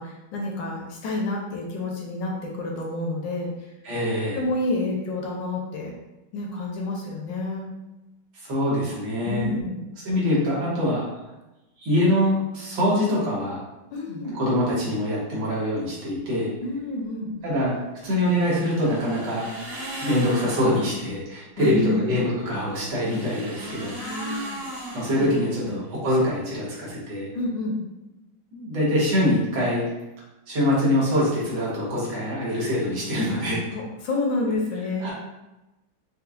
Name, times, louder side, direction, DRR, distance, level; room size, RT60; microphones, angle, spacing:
voice 1, 0.0-3.5 4.3-5.9 6.3-7.7 9.2-9.8 13.9-14.3 16.6-17.5 21.6-22.0 24.0-25.3 25.6-25.8 27.3-27.8 33.7-35.1, left 2 dB, 75° left, -2 dB, 1.3 m, -29 dB
voice 2, 3.8-4.4 8.3-9.6 10.1-11.0 11.8-13.6 14.1-16.5 17.4-17.7 18.0-19.5 20.0-23.9 24.3-24.4 24.9-27.3 28.5-29.8 30.5-33.7 35.0-35.1, left 1 dB, 80° right, -6 dB, 1.9 m, -24 dB
sound 1, 18.0-21.1 22.6-25.9, right 1 dB, 50° right, 1.1 m, -37 dB
5.2 x 2.1 x 2.3 m, 1.0 s
omnidirectional pair, 2.1 m